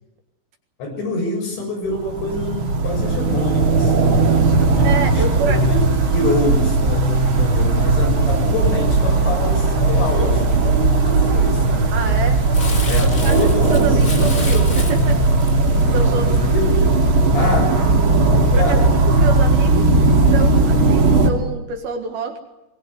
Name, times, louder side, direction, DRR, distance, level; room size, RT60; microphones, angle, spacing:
voice 1, 0.8-5.8 6.1-11.9 12.9-14.0 16.2-16.9 17.3-17.7 18.5-18.9, left 2 dB, 65° left, 3 dB, 9.0 m, -26 dB
sound 1, 1.9-21.3, right 3 dB, 35° right, 2.5 m, -17 dB
voice 2, 4.8-5.6 11.9-12.5 12.9-15.3 15.9-16.5 17.4-17.6 18.5-22.4, right 5 dB, 60° right, 5 dB, 3.2 m, -27 dB
Crumpling crinkling, 12.5-17.1 17.5-17.6, left 3 dB, 35° left, 1.3 m, -33 dB
23.5 x 20.5 x 9.7 m, 0.95 s
omnidirectional pair, 5.5 m